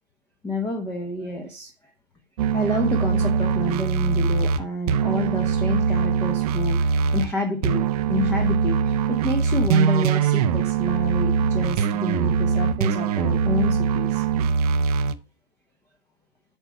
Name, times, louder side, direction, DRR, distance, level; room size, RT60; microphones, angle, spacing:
voice 1, 0.4-1.7 2.5-14.2, left 2 dB, 5° left, 4 dB, 0.9 m, -28 dB
sound 1, 2.4-7.3 7.6-15.1, right 6 dB, 35° right, 0.7 m, -22 dB
8.9 x 5.9 x 4.7 m, 0.31 s
hypercardioid pair, 130°, 32 cm